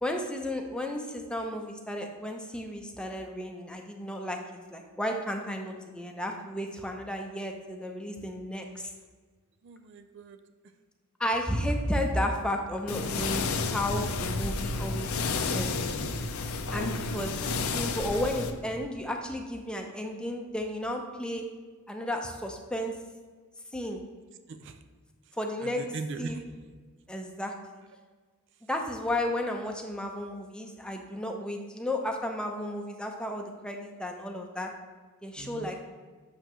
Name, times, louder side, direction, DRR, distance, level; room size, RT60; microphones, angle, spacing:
voice 1, 0.0-4.4 4.7-8.9 11.2-15.1 15.4-15.8 16.7-17.4 17.7-21.4 21.9-22.9 23.7-24.0 25.4-25.8 26.2-26.4 27.1-27.5 28.7-34.7 35.2-35.8, left 1 dB, 5° left, 2 dB, 0.6 m, -33 dB
voice 2, 9.6-10.4 24.5-24.8 25.6-26.4 35.4-35.7, right 3 dB, 60° right, 9 dB, 0.4 m, -40 dB
sound 1, 12.9-18.5, left 3 dB, 85° left, 0.6 m, -31 dB
8.0 x 6.5 x 3.1 m, 1.4 s
head